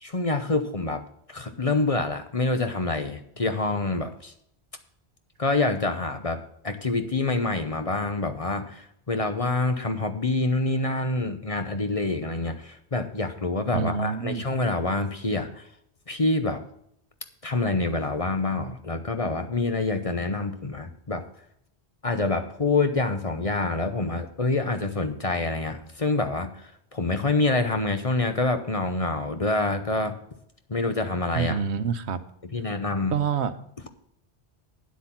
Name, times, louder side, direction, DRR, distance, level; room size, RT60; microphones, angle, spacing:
voice 1, 0.0-1.0 1.3-4.3 5.4-15.7 16.1-16.6 17.4-21.2 22.0-30.2 30.7-31.6 32.4-33.1, left 3 dB, 35° left, 8 dB, 0.9 m, -26 dB
voice 2, 13.7-14.4 31.3-32.2 33.1-33.5, right 6 dB, 75° right, 12 dB, 1.1 m, -27 dB
9.6 x 8.1 x 5.9 m, 0.71 s
omnidirectional pair, 1.1 m